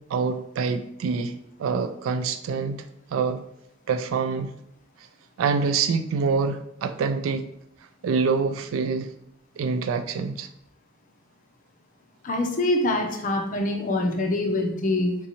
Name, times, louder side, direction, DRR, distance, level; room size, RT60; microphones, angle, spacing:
voice 1, 0.1-1.3 1.6-2.8 3.1-3.4 3.9-4.5 5.4-7.4 8.0-9.1 9.6-10.5, right 5 dB, 80° right, 9 dB, 0.3 m, -25 dB
voice 2, 12.2-15.1, left 1 dB, 40° left, 2 dB, 0.5 m, -24 dB
3.6 x 2.8 x 2.8 m, 0.76 s
head